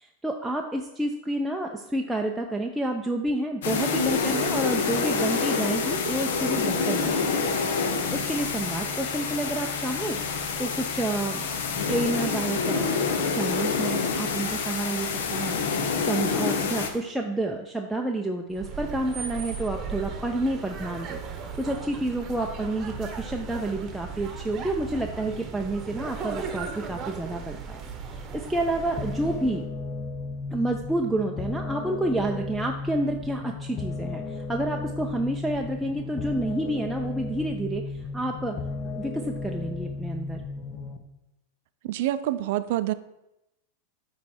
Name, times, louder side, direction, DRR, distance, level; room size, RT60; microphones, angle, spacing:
voice 1, 0.0-11.6 11.9-29.6 30.5-38.6 38.9-40.4, right 1 dB, 5° right, 1 dB, 0.5 m, -29 dB
sound 1, 3.6-16.9, left 5 dB, 75° left, 0.8 m, -27 dB
sound 2, 18.5-29.6, right 5 dB, 35° right, 0.9 m, -37 dB
sound 3, 29.0-41.0, left 3 dB, 30° left, 0.7 m, -34 dB
voice 2, 41.8-42.9, right 13 dB, 65° right, 14 dB, 0.4 m, -26 dB
9.0 x 3.2 x 4.3 m, 0.90 s
hypercardioid pair, 115°, 0 cm